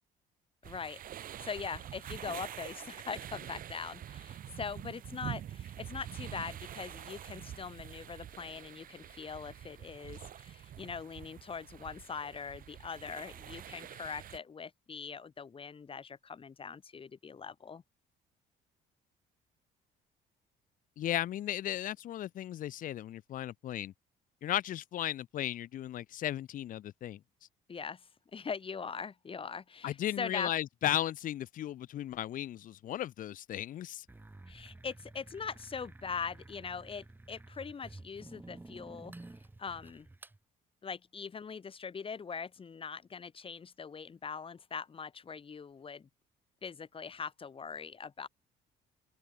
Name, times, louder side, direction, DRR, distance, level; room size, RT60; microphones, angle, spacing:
voice 1, 0.6-1.0 1.4-17.8 27.7-30.5 34.5-39.1 39.6-40.1 40.8-46.1 46.6-48.3, left 6 dB, 30° left, 3.7 m, -42 dB
sound 1, 0.6-14.4, right 11 dB, 55° right, 2.5 m, -46 dB
voice 2, 21.0-23.9 24.4-27.2 29.8-34.1, left 12 dB, 55° left, 0.7 m, -35 dB
sound 2, 34.1-40.4, right 2 dB, 10° right, 1.9 m, -52 dB
open air
cardioid pair, 110°, 17 cm